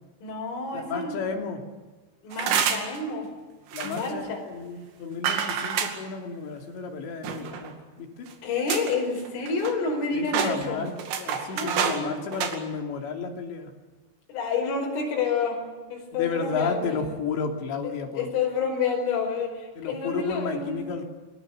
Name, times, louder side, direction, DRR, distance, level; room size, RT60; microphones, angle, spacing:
voice 1, 0.2-1.2 2.2-3.3 3.8-4.4 8.4-10.9 11.5-12.2 14.3-15.6 15.9-17.2 18.2-20.9, left 4 dB, 80° left, 0 dB, 7.6 m, -29 dB
voice 2, 0.7-1.6 2.5-2.7 3.7-8.3 10.1-10.9 11.2-13.7 16.1-18.3 19.8-21.0, left 5 dB, 65° left, 3 dB, 5.0 m, -32 dB
sound 1, 2.3-3.0 3.7-4.1 5.2-6.0 7.2-7.7 8.3-8.4 8.7-9.0 9.3-10.0 10.3-12.0 12.3-12.6, right 7 dB, 80° right, 4.9 m, -28 dB
28.5 x 20.5 x 8.0 m, 1.3 s
omnidirectional pair, 5.7 m